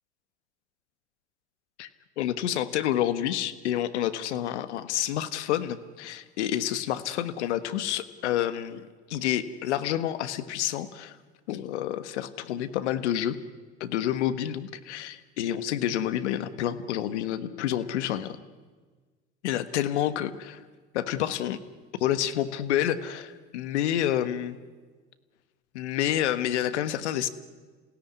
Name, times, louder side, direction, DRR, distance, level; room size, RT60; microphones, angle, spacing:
voice 1, 2.2-11.2 11.5-13.4 13.8-18.4 19.4-20.6 20.9-21.6 22.0-24.6 25.7-27.3, left 11 dB, 80° left, 13 dB, 1.5 m, -29 dB
27.0 x 17.0 x 9.6 m, 1.4 s
hypercardioid pair, 80°, 34 cm